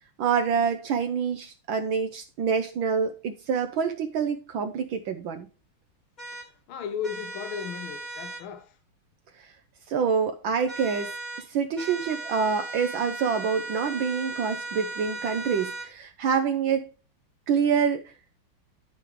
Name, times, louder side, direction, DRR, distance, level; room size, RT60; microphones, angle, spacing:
voice 1, 0.2-5.5 9.4-9.5 9.9-16.9 17.5-18.1, right 6 dB, 70° right, 1.5 m, -26 dB
sound 1, 6.2-6.5 7.0-8.4 10.7-11.5 11.8-15.9, right 2 dB, 20° left, 1.7 m, -37 dB
voice 2, 6.3-8.8, left 7 dB, 75° left, 1.6 m, -36 dB
12.5 x 5.4 x 3.1 m
omnidirectional pair, 2.4 m